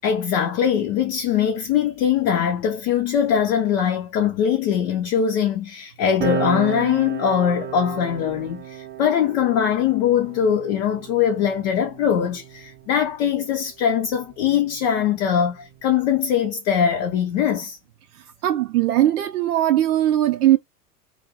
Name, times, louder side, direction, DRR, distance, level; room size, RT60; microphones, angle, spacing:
voice 1, 0.0-17.8, left 8 dB, 45° left, 0.7 m, -22 dB
sound 1, 6.2-13.1 14.1-15.9, right 8 dB, 20° right, 0.6 m, -34 dB
voice 2, 18.4-20.6, right 13 dB, 70° right, 0.5 m, -19 dB
2.5 x 2.4 x 3.0 m
figure-of-eight pair, 90°, 47 cm